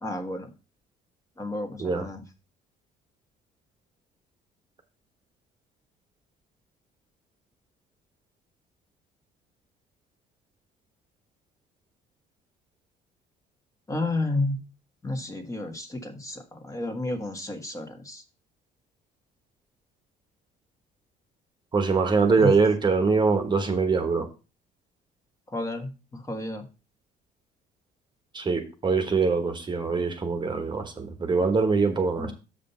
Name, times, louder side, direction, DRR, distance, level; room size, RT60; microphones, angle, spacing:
voice 1, 0.0-0.5 1.4-2.2 13.9-14.6 15.0-18.2 22.4-22.5 25.5-26.6 32.2-32.3, left 2 dB, 20° left, 1.5 m, -31 dB
voice 2, 21.7-24.3 28.3-32.3, right 4 dB, 25° right, 1.2 m, -23 dB
6.9 x 5.2 x 5.6 m
cardioid pair, 110°, 17 cm